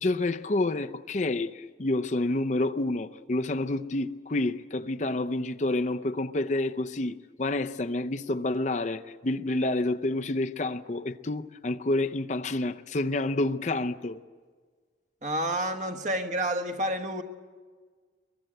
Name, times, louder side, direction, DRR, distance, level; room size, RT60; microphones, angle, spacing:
voice 1, 0.0-14.2, left 2 dB, 40° left, 0.6 m, -29 dB
voice 2, 15.2-17.2, right 1 dB, 45° right, 1.4 m, -29 dB
23.0 x 23.0 x 7.8 m
head